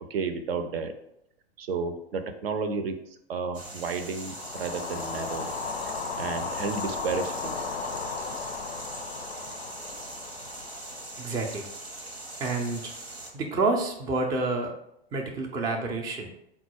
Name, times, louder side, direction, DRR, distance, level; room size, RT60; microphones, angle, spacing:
voice 1, 0.1-0.9 1.6-5.5 6.2-7.7, right 4 dB, 70° right, 8 dB, 0.6 m, -32 dB
sound 1, 3.5-13.3, right 2 dB, 90° right, 1.0 m, -41 dB
sound 2, 4.2-12.4, left 5 dB, 90° left, 0.5 m, -36 dB
voice 2, 11.2-11.7 12.4-12.9 13.3-14.7 15.1-16.3, right 3 dB, 10° right, 2 dB, 0.3 m, -28 dB
3.9 x 2.3 x 4.4 m, 0.79 s
figure-of-eight pair, 100°, 31 cm